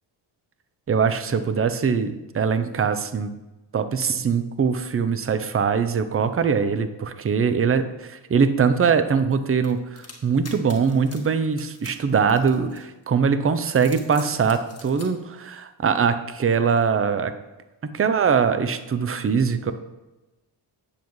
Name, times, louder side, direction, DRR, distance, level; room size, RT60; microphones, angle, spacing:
voice 1, 0.9-3.3 3.7-17.3 17.8-19.7, right 6 dB, 30° right, 11 dB, 0.6 m, -22 dB
sound 1, 9.6-13.1 13.6-15.1, left 3 dB, 30° left, 1.8 m, -44 dB
9.0 x 7.2 x 3.1 m, 1.0 s
cardioid pair, 75°, 50 cm